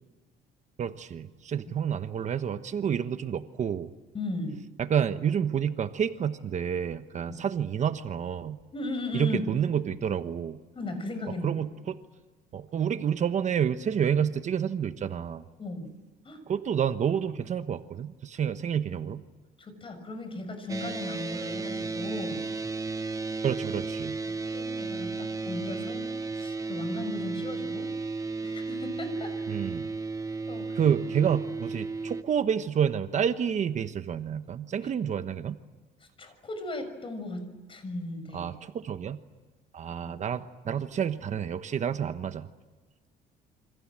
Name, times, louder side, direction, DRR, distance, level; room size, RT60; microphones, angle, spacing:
voice 1, 0.8-3.9 4.8-8.6 9.1-10.6 11.4-12.0 12.5-15.4 16.5-19.2 23.4-24.2 29.5-29.9 30.7-35.6 38.3-39.2 39.7-42.5, right 8 dB, 45° right, 10 dB, 1.2 m, -29 dB
voice 2, 4.1-4.6 8.7-9.4 10.7-11.5 15.6-15.9 16.2-16.4 19.6-22.4 24.2-26.1 26.3-27.9 28.4-29.3 30.5-30.8 36.2-38.5 40.0-40.1, left 2 dB, 30° left, 9 dB, 6.6 m, -36 dB
sound 1, 20.7-32.2, right 3 dB, 20° right, 1.3 m, -34 dB
28.5 x 26.0 x 7.6 m, 1.3 s
cardioid pair, 110°, 17 cm